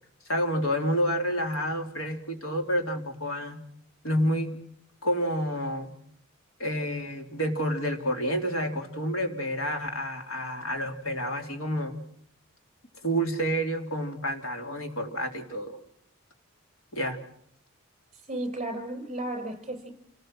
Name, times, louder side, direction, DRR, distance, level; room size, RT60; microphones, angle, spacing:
voice 1, 0.3-3.6 4.0-4.6 5.0-5.9 6.6-12.0 13.0-15.8 16.9-17.2, equal, 80° left, 4 dB, 3.4 m, -29 dB
voice 2, 18.3-19.9, right 1 dB, 30° right, 4 dB, 6.1 m, -34 dB
28.5 x 19.0 x 7.7 m, 0.69 s
head